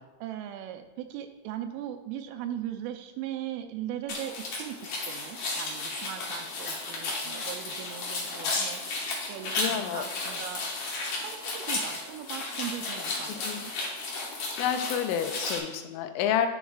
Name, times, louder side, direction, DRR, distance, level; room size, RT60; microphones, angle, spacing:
voice 1, 0.2-8.8 9.3-10.6 11.1-13.7, right 11 dB, 85° right, 7 dB, 3.0 m, -39 dB
sound 1, 4.1-15.6, left 3 dB, 70° left, 1.8 m, -34 dB
voice 2, 9.6-10.1 13.3-13.7 14.4-16.5, left 9 dB, 85° left, 7 dB, 3.2 m, -29 dB
11.0 x 7.1 x 2.4 m, 1.1 s
omnidirectional pair, 5.6 m